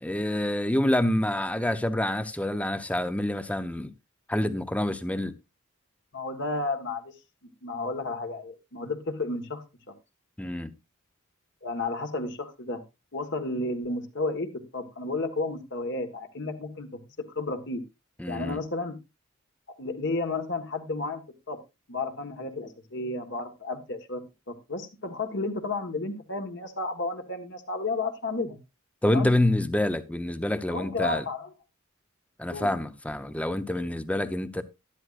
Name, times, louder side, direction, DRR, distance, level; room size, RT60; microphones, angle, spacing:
voice 1, 0.0-3.9 4.3-5.3 10.4-10.7 18.2-18.6 29.0-31.2 32.4-34.6, left 1 dB, 5° left, 0.6 m, -27 dB
voice 2, 6.1-7.1 7.4-9.6 11.6-12.8 13.1-17.0 17.3-17.8 18.3-18.9 19.8-21.2 21.5-21.6 21.9-24.2 24.5-28.6 29.0-29.3 30.7-31.5 32.5-32.7, left 3 dB, 55° left, 1.5 m, -32 dB
12.5 x 11.5 x 2.5 m
head